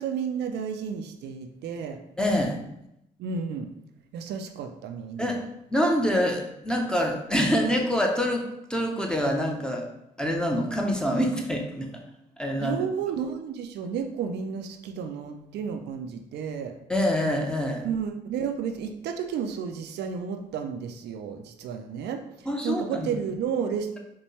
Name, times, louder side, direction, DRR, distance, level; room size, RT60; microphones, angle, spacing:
voice 1, 0.0-2.0 3.2-3.7 4.1-5.4 12.6-16.7 17.8-24.0, right 7 dB, 75° right, 5 dB, 0.4 m, -32 dB
voice 2, 2.2-2.6 5.2-9.9 10.2-11.9 12.4-12.8 16.9-17.8 22.5-23.1, equal, 5° left, 1 dB, 0.8 m, -26 dB
4.2 x 2.2 x 3.2 m, 0.81 s
supercardioid pair, 55°, 18 cm